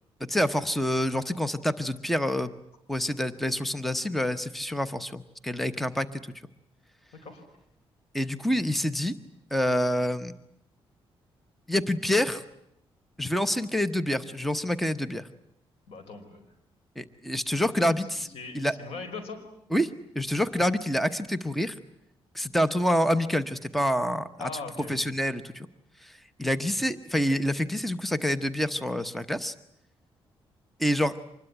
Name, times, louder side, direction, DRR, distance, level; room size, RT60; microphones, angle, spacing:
voice 1, 0.2-2.5 2.9-6.2 8.1-9.1 9.5-10.3 11.7-12.4 13.2-15.3 17.0-18.3 18.5-18.7 19.7-19.9 20.1-21.7 22.3-24.5 24.9-25.7 26.0-29.5 30.8-31.1, equal, ahead, 13 dB, 0.9 m, -27 dB
voice 2, 15.9-16.4 18.3-19.4 24.4-25.1, left 4 dB, 85° left, 8 dB, 5.2 m, -40 dB
25.5 x 21.0 x 9.9 m, 0.77 s
cardioid pair, 130°, 10 cm